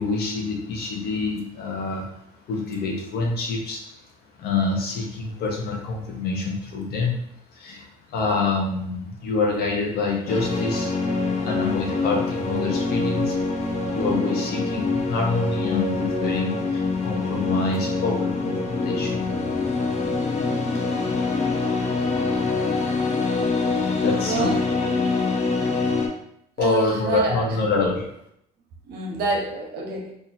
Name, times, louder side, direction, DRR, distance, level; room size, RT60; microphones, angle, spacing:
voice 1, 0.0-2.1 2.5-4.0 4.4-7.2 7.5-10.9 11.4-13.4 13.9-19.3 21.2-21.3 23.8-24.5 26.6-28.1, left 3 dB, 70° left, 0 dB, 1.0 m, -26 dB
sound 1, 10.3-26.1, left 3 dB, 40° left, 0.8 m, -25 dB
voice 2, 20.8-21.2 24.1-24.7 26.6-27.6 28.9-30.1, right 3 dB, 75° right, 0 dB, 1.0 m, -27 dB
2.9 x 2.7 x 4.1 m, 0.74 s
cardioid pair, 110°, 17 cm